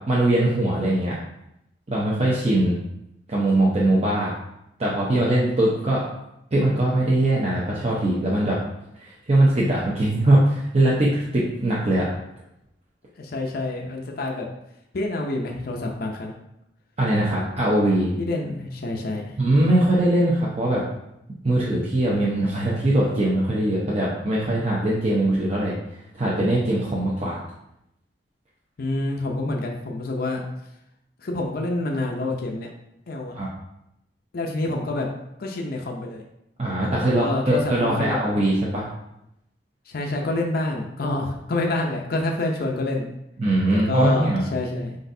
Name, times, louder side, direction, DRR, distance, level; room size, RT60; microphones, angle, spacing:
voice 1, 0.1-1.1 1.9-2.8 3.3-4.3 4.8-6.0 6.5-8.6 9.0-12.1 17.0-18.1 19.4-20.8 21.4-25.8 26.2-27.4 33.4-33.5 36.6-38.8 43.4-44.4, right 1 dB, 35° right, -6 dB, 0.7 m, -21 dB
voice 2, 13.2-14.5 14.9-16.3 18.1-19.3 28.8-30.4 31.2-32.7 33.1-33.3 34.3-35.1 35.4-36.2 37.2-38.2 39.9-43.1 43.7-45.0, left 2 dB, 55° left, 0 dB, 0.5 m, -27 dB
4.9 x 4.0 x 2.7 m, 0.83 s
head